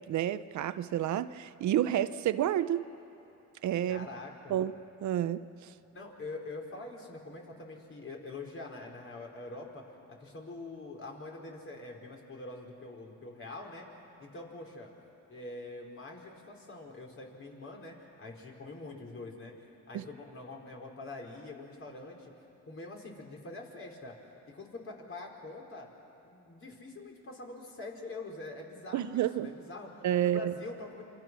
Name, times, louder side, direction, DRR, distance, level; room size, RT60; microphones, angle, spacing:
voice 1, 0.1-2.8 3.6-4.1 4.5-4.7 5.0-5.4 19.9-20.1 28.9-29.5 30.0-30.5, right 11 dB, 70° right, 13 dB, 0.7 m, -29 dB
voice 2, 3.9-4.6 5.9-13.9 14.2-14.9 15.3-19.5 19.9-22.3 22.7-24.2 24.5-25.9 26.2-31.0, left 2 dB, 45° left, 0 dB, 4.7 m, -45 dB
27.5 x 25.0 x 6.2 m, 2.8 s
cardioid pair, 90°, 30 cm